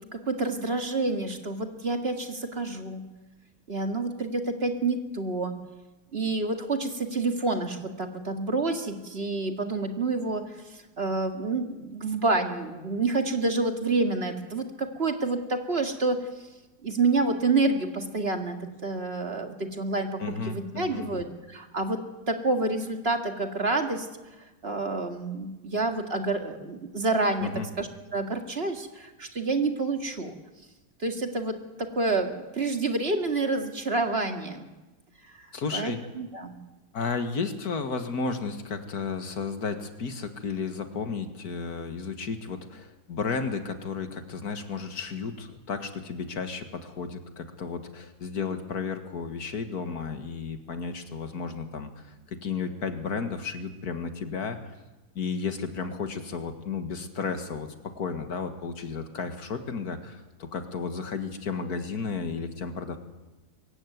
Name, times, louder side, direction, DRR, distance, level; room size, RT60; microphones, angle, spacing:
voice 1, 0.1-3.0 3.7-5.5 6.1-16.2 16.8-18.6 18.8-20.2 20.5-22.0 22.3-24.1 24.6-27.5 27.8-30.4 31.0-34.7 35.4-35.5 35.7-36.5, right 3 dB, 40° right, 5 dB, 2.3 m, -28 dB
voice 2, 20.2-21.1 27.4-27.7 35.5-36.0 36.9-54.6 55.2-57.7 58.0-63.0, left 5 dB, 65° left, 7 dB, 2.3 m, -33 dB
23.5 x 15.5 x 9.4 m, 1.1 s
omnidirectional pair, 1.7 m